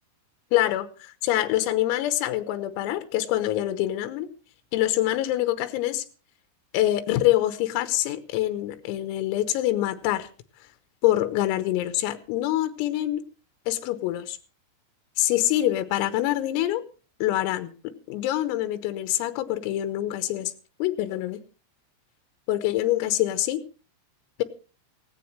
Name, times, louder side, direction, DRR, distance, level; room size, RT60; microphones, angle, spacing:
voice 1, 0.5-4.3 4.7-6.1 6.7-10.3 11.0-13.2 13.7-14.4 15.2-16.9 17.2-20.5 20.8-21.4 22.5-23.6, left 14 dB, 90° left, 11 dB, 3.8 m, -25 dB
17.0 x 17.0 x 3.2 m, 0.35 s
omnidirectional pair, 5.9 m